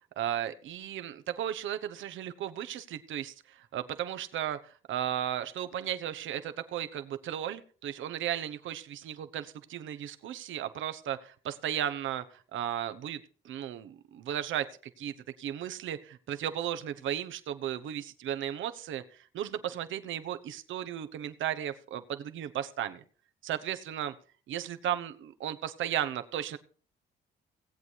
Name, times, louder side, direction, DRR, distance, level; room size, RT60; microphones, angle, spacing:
voice 1, 0.2-13.2 13.4-14.7 15.0-19.0 19.3-23.0 23.4-24.1 24.5-26.6, right 10 dB, 75° right, 10 dB, 1.1 m, -35 dB
18.0 x 8.3 x 4.6 m, 0.41 s
cardioid pair, 90°, 20 cm